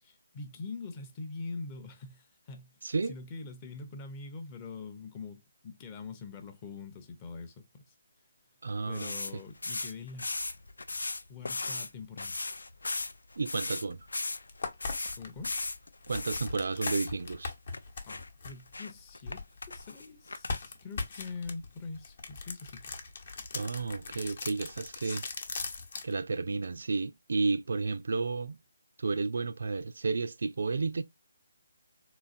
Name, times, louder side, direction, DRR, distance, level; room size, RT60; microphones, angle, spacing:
voice 1, 0.0-2.8 3.1-7.9 8.9-10.3 11.3-12.4 15.2-15.6 18.1-23.0, left 4 dB, 20° left, 0.6 m, -44 dB
voice 2, 2.8-3.1 8.6-9.4 13.4-14.1 16.1-17.5 23.5-25.2 26.0-28.6 29.0-31.0, right 4 dB, 65° right, 0.3 m, -32 dB
sound 1, 8.9-11.9 12.2-16.5 16.8-17.2 17.7-17.8 18.1-19.3 19.6-20.7, left 3 dB, 90° left, 0.4 m, -37 dB
sound 2, 14.0-14.1 14.5-19.9 20.3-26.1, left 4 dB, 55° left, 0.9 m, -40 dB
3.9 x 2.4 x 2.4 m
hypercardioid pair, 165°, 0 cm